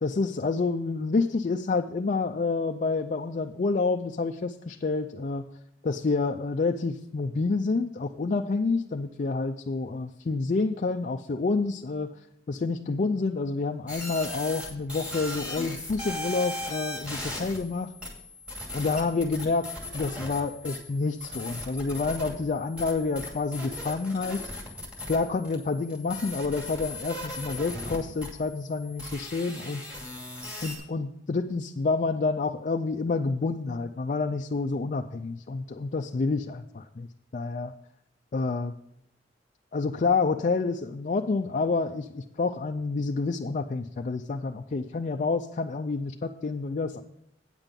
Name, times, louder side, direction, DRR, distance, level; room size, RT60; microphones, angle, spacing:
voice 1, 0.0-5.4 5.8-12.2 12.5-17.9 18.7-24.4 25.1-29.8 30.6-37.1 37.3-37.7 38.3-38.7 39.7-47.0, left 3 dB, 40° left, 4 dB, 0.4 m, -28 dB
sound 1, 13.9-30.8, left 1 dB, 5° right, 2.5 m, -38 dB
9.0 x 7.4 x 5.2 m, 0.81 s
head